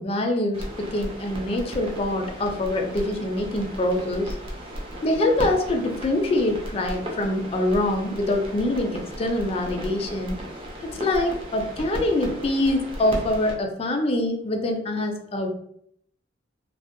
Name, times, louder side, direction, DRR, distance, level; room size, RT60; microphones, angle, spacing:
voice 1, 0.0-4.3 5.0-10.4 10.8-15.5, left 1 dB, 30° left, 3 dB, 0.3 m, -25 dB
sound 1, 0.5-13.5, equal, 30° right, 0.5 m, -36 dB
2.6 x 2.0 x 2.5 m, 0.70 s
head